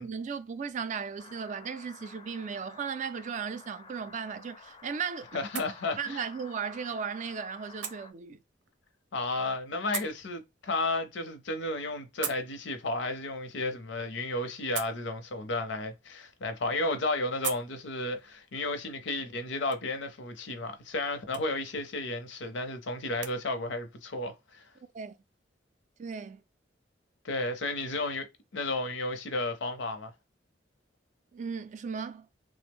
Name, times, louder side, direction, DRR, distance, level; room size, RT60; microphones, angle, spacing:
voice 1, 0.0-5.4 6.0-8.4 24.9-25.1 26.0-26.4 31.3-32.3, right 6 dB, 40° right, 0.3 m, -36 dB
sound 1, 1.2-8.1, left 4 dB, 30° left, 0.4 m, -51 dB
sound 2, 3.9-23.4, right 7 dB, 90° right, 0.6 m, -46 dB
voice 2, 5.3-6.2 9.1-24.7 27.2-28.3 28.5-30.1, left 2 dB, 85° left, 0.7 m, -33 dB
3.2 x 2.0 x 3.4 m
head